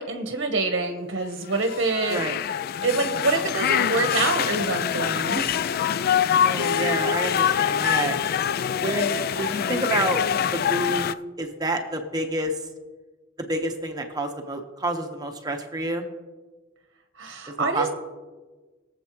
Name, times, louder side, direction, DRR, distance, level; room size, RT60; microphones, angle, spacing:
voice 1, 0.0-2.2 2.8-5.6 17.2-17.9, right 3 dB, 55° right, 5 dB, 1.0 m, -26 dB
sound 1, 1.5-11.1, left 8 dB, 50° left, 0.3 m, -25 dB
voice 2, 6.4-8.2 8.8-10.2 10.5-12.5 13.4-16.0 17.5-17.9, right 1 dB, 20° right, 4 dB, 1.1 m, -28 dB
22.5 x 7.6 x 3.1 m, 1.3 s
head